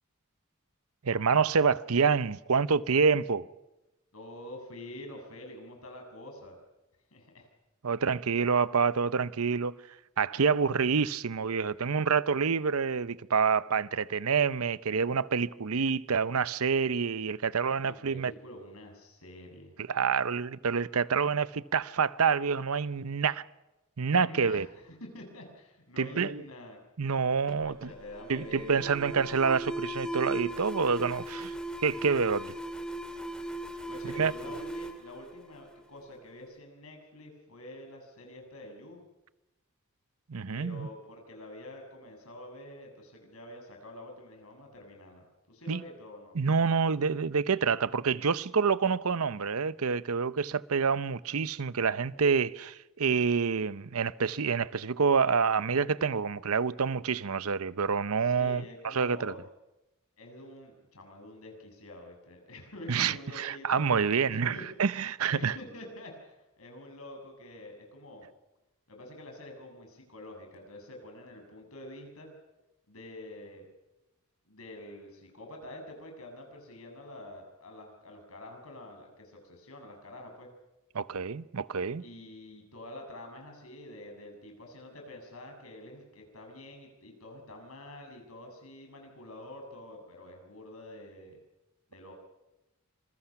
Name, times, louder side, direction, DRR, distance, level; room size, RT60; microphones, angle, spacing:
voice 1, 1.0-3.5 7.8-9.8 10.2-18.3 19.8-23.4 24.0-24.7 26.0-26.4 27.0-27.9 28.3-31.5 31.8-32.5 34.0-34.3 40.3-40.9 45.7-45.8 46.3-59.3 62.9-65.5 80.9-82.0, right 5 dB, 80° right, 0.7 m, -27 dB
voice 2, 4.1-6.6 7.1-7.5 17.8-19.7 24.2-26.8 27.6-29.0 31.8-31.9 33.9-39.0 40.5-46.4 58.2-59.4 60.2-63.8 64.3-64.6 65.3-68.3 68.9-72.3 72.9-73.7 74.5-80.5 82.0-91.4 91.9-92.1, left 1 dB, 80° left, 7.1 m, -47 dB
Alarm, 27.5-36.1, right 1 dB, 5° left, 2.1 m, -38 dB
26.5 x 21.5 x 5.8 m
head